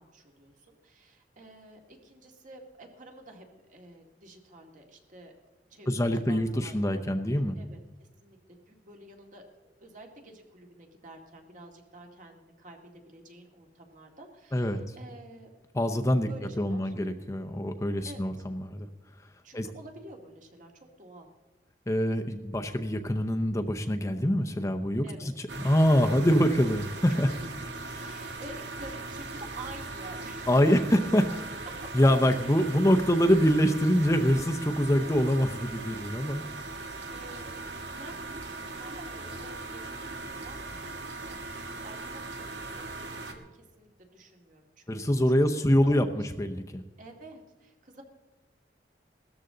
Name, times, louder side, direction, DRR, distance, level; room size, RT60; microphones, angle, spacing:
voice 1, 0.0-5.3 5.7-8.4 8.7-15.5 16.3-16.9 18.0-18.4 19.4-21.3 25.0-25.3 27.1-27.3 27.9-30.6 31.8-31.9 37.1-44.8 45.3-46.0 47.0-48.0, right 1 dB, 50° right, 2 dB, 2.2 m, -50 dB
voice 2, 5.9-7.6 14.5-14.8 15.7-16.3 16.6-18.9 19.5-19.7 21.9-27.3 27.9-28.1 30.5-31.2 31.9-36.7 44.9-46.8, equal, 20° left, 6 dB, 0.7 m, -25 dB
sound 1, 25.5-43.3, right 3 dB, 90° right, 1.6 m, -39 dB
17.0 x 13.5 x 3.9 m, 1.2 s
head